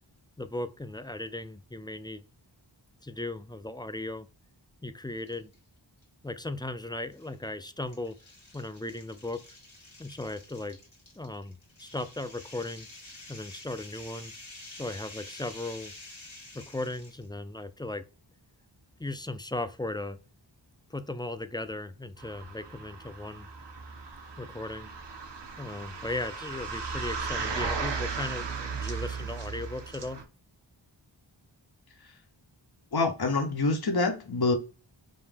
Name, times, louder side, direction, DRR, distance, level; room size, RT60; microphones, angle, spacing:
voice 1, 0.4-2.2 3.0-4.3 4.8-5.5 6.2-8.2 8.5-9.4 10.0-10.8 11.2-12.9 13.3-14.3 14.7-15.9 16.5-18.0 19.0-20.2 20.9-23.5 24.4-24.9 25.6-30.2, left 2 dB, 10° left, 0.4 m, -37 dB
sound 1, 5.2-5.6 6.0-6.1 7.1-17.3, left 2 dB, 85° left, 1.7 m, -49 dB
sound 2, 22.2-30.2, right 5 dB, 65° right, 0.8 m, -36 dB
voice 2, 32.9-34.5, left 3 dB, 55° left, 0.8 m, -26 dB
5.4 x 2.2 x 3.3 m
wide cardioid pair, 45°, 46 cm